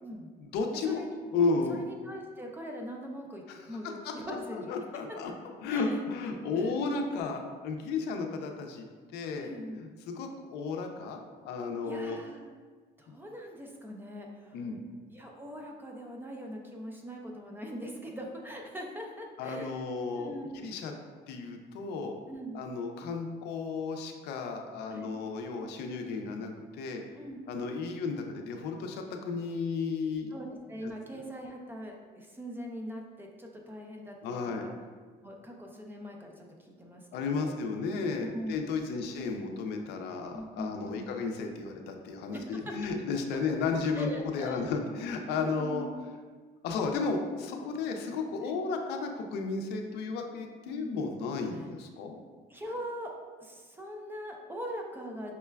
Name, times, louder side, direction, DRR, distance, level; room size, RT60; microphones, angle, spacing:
voice 1, 0.4-1.0 1.3-1.8 3.5-3.7 4.0-5.3 5.6-8.8 9.1-9.5 9.8-12.2 14.5-14.8 19.4-20.9 21.3-22.1 22.5-26.5 26.8-27.0 27.5-30.3 34.2-34.7 37.1-45.9 46.6-52.2, left 4 dB, 80° left, 3 dB, 0.4 m, -33 dB
voice 2, 1.7-4.7 5.7-6.0 6.6-6.9 9.4-9.8 11.8-12.5 13.0-14.6 15.1-19.8 20.2-20.6 22.3-22.6 24.9-25.1 27.2-27.8 30.3-34.7 35.2-37.6 38.2-38.6 38.9-39.0 40.3-41.1 42.3-42.7 43.9-44.7 45.6-46.0 48.4-48.6 50.7-51.0 51.5-51.6 52.5-53.1 53.4-55.3, equal, 10° right, 0 dB, 0.4 m, -42 dB
5.6 x 2.2 x 2.2 m, 1.5 s
cardioid pair, 110°, 17 cm